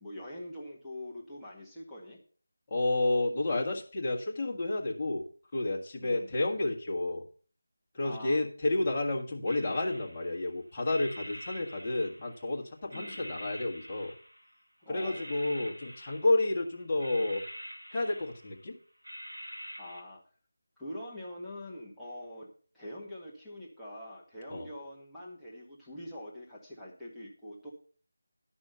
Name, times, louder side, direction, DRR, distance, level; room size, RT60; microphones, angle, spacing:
voice 1, 0.0-2.2 6.0-6.3 8.0-8.4 12.9-13.2 14.8-15.2 19.8-20.2 20.8-27.7, left 1 dB, ahead, -9 dB, 1.7 m, -44 dB
voice 2, 2.7-5.3 5.5-7.2 7.9-14.1 14.9-17.4 17.9-18.7 24.5-24.7, left 2 dB, 25° left, -2 dB, 1.6 m, -30 dB
sound 1, 9.5-10.5 10.9-12.5 12.9-14.6 14.9-16.6 17.0-18.6 19.0-20.0, equal, 90° right, 3.1 m, -46 dB
11.0 x 6.2 x 5.5 m, 0.42 s
figure-of-eight pair, 165°, 0 cm